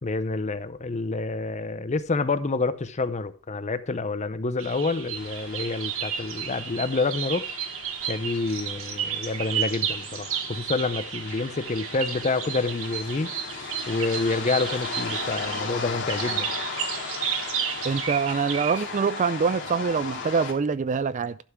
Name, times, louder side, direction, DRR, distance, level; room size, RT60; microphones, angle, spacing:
voice 1, 0.0-7.4 8.1-13.3 13.9-16.5, left 3 dB, 30° left, 0.6 m, -28 dB
sound 1, 4.6-18.8, right 9 dB, 65° right, 1.3 m, -33 dB
sound 2, 5.2-20.5, left 4 dB, 55° left, 2.5 m, -37 dB
voice 2, 17.8-21.4, right 5 dB, 35° right, 0.4 m, -25 dB
11.5 x 5.8 x 4.6 m
head